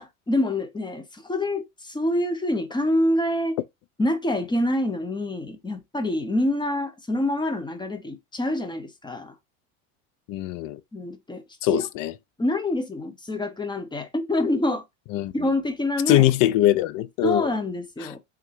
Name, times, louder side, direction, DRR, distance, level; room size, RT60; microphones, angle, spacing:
voice 1, 0.0-3.6 4.0-9.4 10.9-11.4 11.7-11.8 12.4-14.8 15.3-16.3 17.2-18.2, left 1 dB, 10° left, 0.6 m, -26 dB
voice 2, 10.3-10.8 11.6-12.1 15.1-15.3 16.1-17.5 18.0-18.1, left 14 dB, 50° left, 0.5 m, -22 dB
3.5 x 2.3 x 3.1 m
hypercardioid pair, 90°, 44 cm